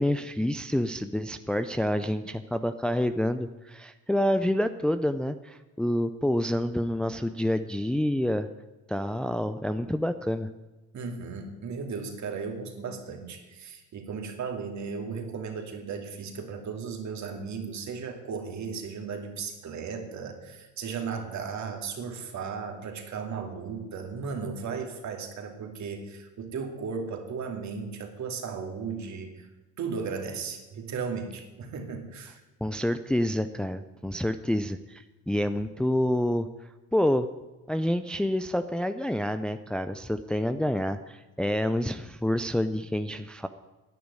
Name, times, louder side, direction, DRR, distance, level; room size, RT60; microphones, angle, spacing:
voice 1, 0.0-8.5 8.9-10.5 32.6-36.5 36.9-37.3 37.7-43.5, left 1 dB, 5° left, 10 dB, 0.6 m, -28 dB
voice 2, 10.9-29.5 29.8-32.4, right 5 dB, 50° right, 4 dB, 2.7 m, -36 dB
10.5 x 9.4 x 9.8 m, 1.2 s
supercardioid pair, 85°, 35 cm